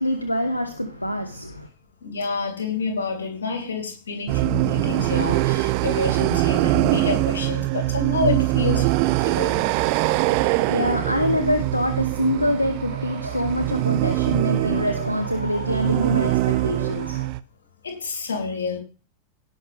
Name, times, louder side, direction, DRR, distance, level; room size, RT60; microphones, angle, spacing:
voice 1, 0.0-1.7 10.1-17.3, left 1 dB, 85° left, 1.0 m, -25 dB
voice 2, 2.0-9.7 17.8-18.8, left 4 dB, 70° left, 3.3 m, -28 dB
sound 1, 4.3-17.4, right 18 dB, 45° right, 0.7 m, -23 dB
18.0 x 6.3 x 3.5 m
figure-of-eight pair, 90°, 0 cm